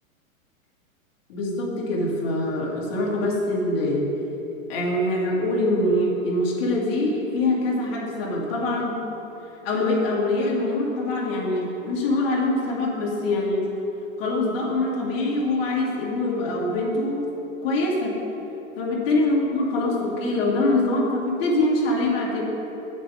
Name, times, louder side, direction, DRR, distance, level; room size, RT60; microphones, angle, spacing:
voice 1, 1.3-4.1 4.7-9.0 9.6-13.6 14.2-17.3 17.6-18.2 18.8-22.4, left 2 dB, 45° left, -4 dB, 2.2 m, -24 dB
8.9 x 6.6 x 5.0 m, 3.0 s
supercardioid pair, 160°, 41 cm